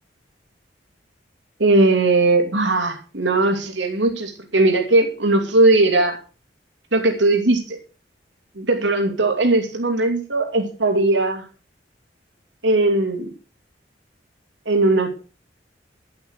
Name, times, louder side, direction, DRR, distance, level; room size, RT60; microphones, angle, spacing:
voice 1, 1.6-6.2 6.9-7.8 8.5-11.4 12.6-13.3 14.7-15.1, right 2 dB, 90° right, 2 dB, 2.8 m, -18 dB
11.0 x 8.7 x 6.4 m, 0.36 s
head